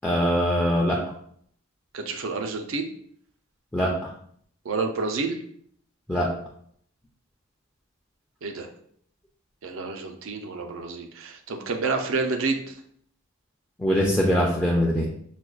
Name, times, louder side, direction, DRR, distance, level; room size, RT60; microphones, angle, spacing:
voice 1, 0.0-1.0 3.7-3.9 6.1-6.3 13.8-15.1, equal, 10° left, -4 dB, 0.4 m, -22 dB
voice 2, 1.9-2.9 4.7-5.4 8.4-8.7 9.6-12.6, right 4 dB, 65° right, 5 dB, 0.4 m, -29 dB
5.9 x 2.2 x 2.3 m, 0.64 s
head